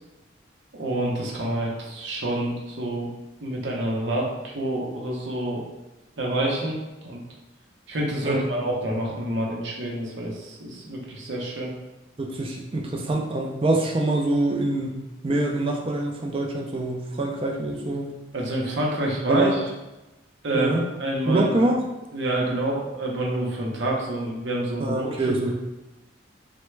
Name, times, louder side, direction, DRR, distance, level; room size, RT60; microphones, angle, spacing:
voice 1, 0.7-3.1 3.4-5.6 6.2-7.2 7.9-11.7 18.3-19.7 20.4-20.7 21.0-21.5 22.1-25.5, right 1 dB, 70° right, -2 dB, 0.7 m, -27 dB
voice 2, 12.2-18.1 19.3-19.6 20.5-20.8 21.3-21.8 24.8-25.5, right 2 dB, 30° right, 0 dB, 0.4 m, -25 dB
3.3 x 2.1 x 3.2 m, 1.0 s
head